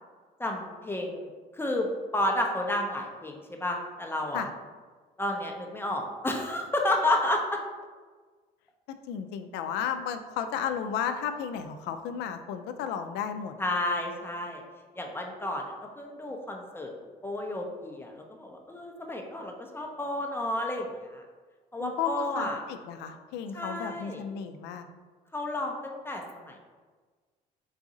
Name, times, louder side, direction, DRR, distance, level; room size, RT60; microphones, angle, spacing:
voice 1, 0.4-1.3 1.6-4.5 5.2-7.6 13.6-14.6 15.0-16.9 17.2-21.2 21.7-22.6 23.5-24.2 25.3-26.6, left 1 dB, 15° left, 1 dB, 0.5 m, -31 dB
voice 2, 9.1-13.5 21.8-24.9, left 8 dB, 85° left, 7 dB, 0.4 m, -33 dB
4.0 x 2.5 x 3.7 m, 1.4 s
cardioid pair, 110°, 17 cm